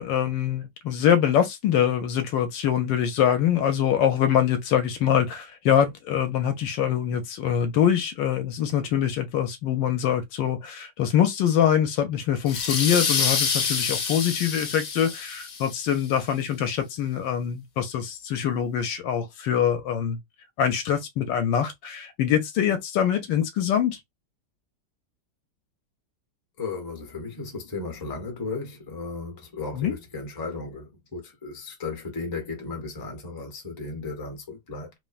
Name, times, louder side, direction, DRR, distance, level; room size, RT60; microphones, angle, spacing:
voice 1, 0.0-20.2 20.6-24.0 29.7-29.9, left 9 dB, 75° left, 1.2 m, -24 dB
sound 1, 12.5-15.9, left 5 dB, 60° left, 0.9 m, -27 dB
voice 2, 26.6-34.9, left 3 dB, 20° left, 0.5 m, -35 dB
3.4 x 2.1 x 2.3 m
omnidirectional pair, 2.2 m